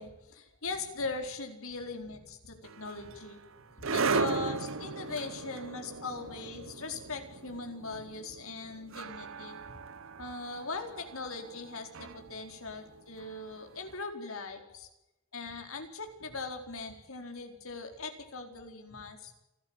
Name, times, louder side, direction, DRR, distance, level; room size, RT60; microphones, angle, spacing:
voice 1, 0.0-3.4 3.9-9.8 10.2-14.9 15.3-19.3, left 3 dB, 75° left, 4 dB, 4.3 m, -40 dB
sound 1, 2.6-13.8, right 4 dB, 65° right, 0.9 m, -37 dB
28.0 x 13.5 x 9.1 m, 0.94 s
head